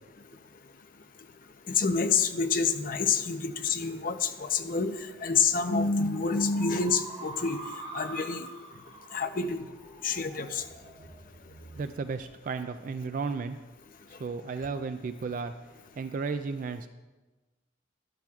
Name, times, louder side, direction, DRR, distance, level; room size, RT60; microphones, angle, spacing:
voice 1, 1.8-4.9 5.2-7.6 7.9-8.5 9.1-9.6 10.0-10.6, left 5 dB, 45° left, 8 dB, 0.6 m, -27 dB
sound 1, 3.2-12.0, right 3 dB, 25° right, 1.5 m, -47 dB
sound 2, 9.3-9.5 9.8-10.2 10.6-12.6 13.0-13.4 13.8-13.9, right 2 dB, 65° right, 1.1 m, -53 dB
voice 2, 11.8-13.6 14.2-15.5 16.0-16.9, right 4 dB, 45° right, 9 dB, 0.3 m, -34 dB
12.5 x 11.5 x 2.4 m, 1.2 s
head